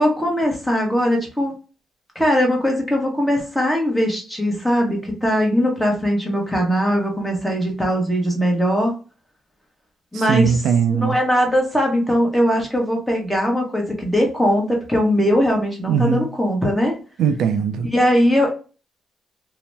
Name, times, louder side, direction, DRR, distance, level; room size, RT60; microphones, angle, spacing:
voice 1, 0.0-1.5 2.1-8.9 10.1-10.6 10.9-16.9 17.9-18.6, equal, ahead, 0.9 m, -20 dB
voice 2, 10.1-11.2 15.9-16.3 17.2-17.9, right 7 dB, 75° right, 0.4 m, -20 dB
2.7 x 2.0 x 3.3 m
cardioid pair, 140°, 0 cm